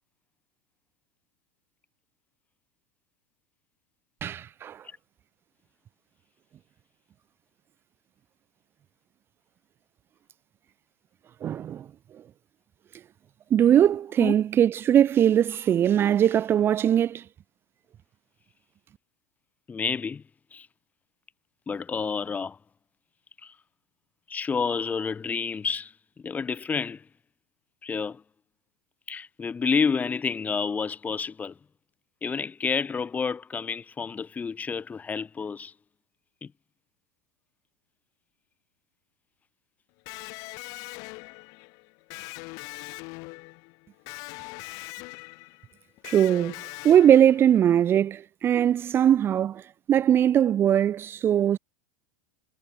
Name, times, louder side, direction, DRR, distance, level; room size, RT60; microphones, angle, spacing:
voice 1, 4.2-4.8 11.4-11.9 13.5-17.2 46.0-46.5 46.8-51.6, right 10 dB, 35° right, 0.8 m, -21 dB
voice 2, 19.7-20.2 20.5-20.7 21.7-22.6 23.4-23.5 24.3-25.9 26.2-27.0 27.8-28.2 29.1-31.6 32.2-35.7 36.4-36.5, left 5 dB, 20° left, 5.1 m, -29 dB
Electric guitar, 40.1-47.8, left 29 dB, 55° left, 2.5 m, -41 dB
hypercardioid pair, 90°, 7 cm